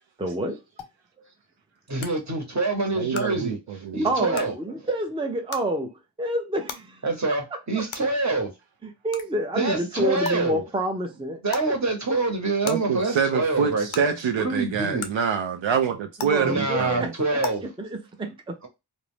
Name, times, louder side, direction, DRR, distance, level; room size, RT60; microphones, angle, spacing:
voice 1, 0.2-0.6 4.0-7.0 8.8-11.4 16.2-17.4 17.8-18.5, right 1 dB, 10° right, 0.5 m, -28 dB
sound 1, 0.8-0.9 2.0-2.1 3.1-3.2 4.3-4.4 5.5-5.6 6.7-6.8 7.9-8.0 9.1-9.2 10.2-10.3 11.5-11.7 12.6-12.7 13.9-14.0 15.0-15.1 16.2-16.3 17.4-17.5, left 7 dB, 85° left, 0.6 m, -33 dB
voice 2, 1.9-4.5 7.0-8.5 9.5-10.6 11.4-14.1 14.4-15.1 16.4-17.6, right 3 dB, 35° right, 1.0 m, -26 dB
voice 3, 2.9-3.6 3.8-4.1 12.7-17.1, right 6 dB, 75° right, 0.5 m, -26 dB
2.6 x 2.1 x 3.1 m
cardioid pair, 40°, 46 cm